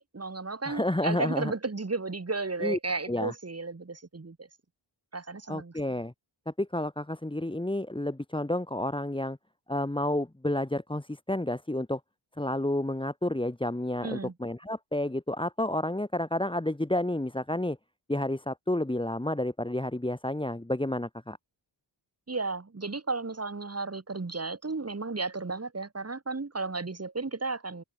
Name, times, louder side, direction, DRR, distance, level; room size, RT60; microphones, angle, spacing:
voice 1, 0.0-4.5 5.1-5.7 14.0-14.3 22.3-27.8, right 3 dB, 30° right, 3.0 m, -33 dB
voice 2, 0.7-1.5 2.6-2.8 3.1-3.3 5.5-6.1 6.5-9.4 9.7-12.0 12.4-17.8 18.1-21.4, left 1 dB, 10° left, 2.0 m, -30 dB
open air
wide cardioid pair, 115°, 49 cm